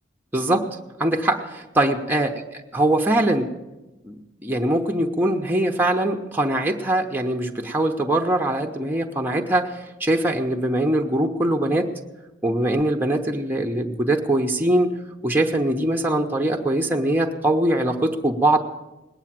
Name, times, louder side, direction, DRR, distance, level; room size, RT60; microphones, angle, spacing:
voice 1, 0.3-0.7 1.0-2.3 2.7-3.5 4.0-11.9 12.4-14.9 15.2-18.6, right 1 dB, 10° right, 2 dB, 0.8 m, -22 dB
19.5 x 8.9 x 7.4 m, 1.1 s
head